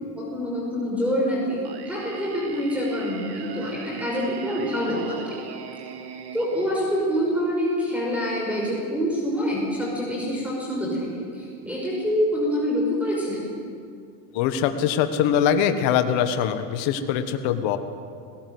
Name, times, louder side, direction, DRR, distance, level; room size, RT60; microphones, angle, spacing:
voice 1, 0.2-5.2 6.3-13.5, equal, 5° right, -3 dB, 5.8 m, -26 dB
Singing, 1.6-7.6, right 7 dB, 55° right, 2.2 m, -40 dB
voice 2, 14.3-17.8, left 9 dB, 65° left, 9 dB, 1.6 m, -22 dB
19.0 x 18.0 x 8.1 m, 2.3 s
supercardioid pair, 95°, 49 cm